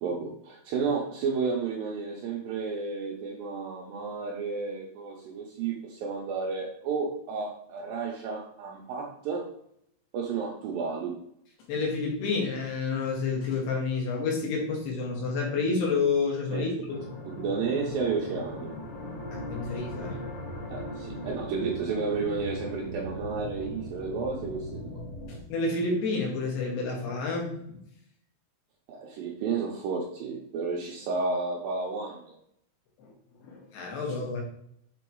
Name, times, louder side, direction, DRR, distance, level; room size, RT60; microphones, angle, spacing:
voice 1, 0.0-9.5 10.1-11.2 16.5-16.7 17.4-18.8 20.7-25.0 28.9-32.4, right 4 dB, 80° right, -3 dB, 2.1 m, -32 dB
voice 2, 11.7-17.0 19.3-20.2 25.3-27.8 33.0-33.1 33.4-34.4, left 4 dB, 65° left, -1 dB, 3.5 m, -29 dB
sound 1, 16.9-25.4, left 1 dB, 50° left, 1.4 m, -39 dB
8.2 x 3.9 x 4.7 m, 0.70 s
omnidirectional pair, 5.3 m